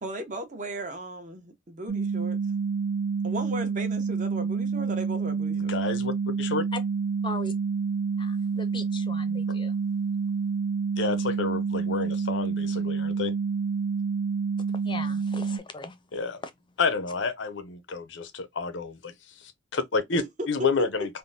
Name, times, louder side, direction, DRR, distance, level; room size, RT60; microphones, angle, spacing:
voice 1, 0.0-2.4 3.2-5.8 20.1-20.9, right 1 dB, 45° right, 0.9 m, -36 dB
sound 1, 1.9-15.6, right 5 dB, 65° right, 0.6 m, -28 dB
voice 2, 5.7-6.6 9.5-9.6 11.0-13.3 16.1-16.4 16.8-19.1 19.4-20.2 20.5-21.2, left 4 dB, 80° left, 0.6 m, -29 dB
voice 3, 8.2-9.8 14.8-16.0 16.4-16.5, left 3 dB, 25° left, 0.6 m, -38 dB
3.5 x 2.2 x 2.6 m
head